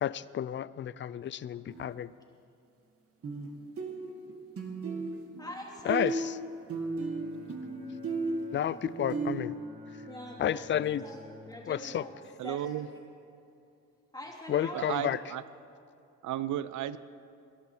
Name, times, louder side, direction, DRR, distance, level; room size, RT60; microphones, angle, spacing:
voice 1, 0.0-2.1 5.9-6.2 8.5-9.5 10.4-11.0 11.7-12.0 14.5-15.2, left 10 dB, 40° left, 18 dB, 0.4 m, -31 dB
sound 1, 1.7-1.9 3.2-3.5 3.8-5.6 5.9-9.4, right 4 dB, 50° right, 1.8 m, -35 dB
voice 2, 5.4-6.6 10.1-12.2 12.4-12.7 14.1-15.0, left 1 dB, 15° left, -2 dB, 2.9 m, -44 dB
Bowed string instrument, 6.5-12.0, equal, 30° right, 3.9 m, -52 dB
voice 3, 12.4-12.9 14.7-15.4 16.2-17.0, right 12 dB, 75° right, 15 dB, 0.6 m, -33 dB
21.0 x 11.0 x 4.5 m, 2.6 s
cardioid pair, 90°, 30 cm